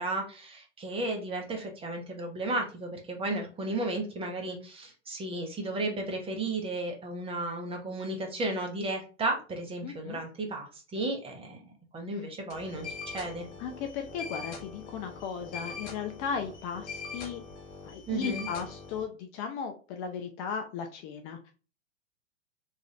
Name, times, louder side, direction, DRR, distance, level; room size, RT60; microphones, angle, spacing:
voice 1, 0.0-11.6 11.9-13.5 18.1-18.5, right 2 dB, 15° right, 2 dB, 0.7 m, -34 dB
voice 2, 9.8-10.2 12.2-12.3 13.6-17.4 17.8-21.5, left 6 dB, 35° left, 4 dB, 0.4 m, -36 dB
sound 1, 12.5-19.0, left 5 dB, 70° left, 1.0 m, -42 dB
3.1 x 2.4 x 2.6 m, 0.34 s
hypercardioid pair, 100°, 36 cm